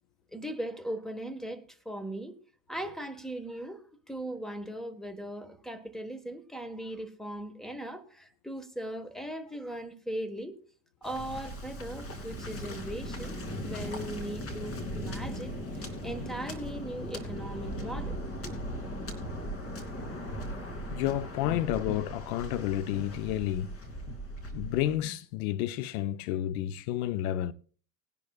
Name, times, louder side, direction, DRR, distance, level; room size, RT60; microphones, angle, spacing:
voice 1, 0.3-2.3 2.7-10.5 11.0-18.5, right 1 dB, ahead, 1.5 m, -39 dB
Waves surf, 11.0-25.0, equal, 30° left, 2.9 m, -38 dB
voice 2, 20.9-23.7 24.5-27.5, left 12 dB, 65° left, 0.8 m, -30 dB
20.0 x 10.5 x 2.4 m
hypercardioid pair, 100°, 47 cm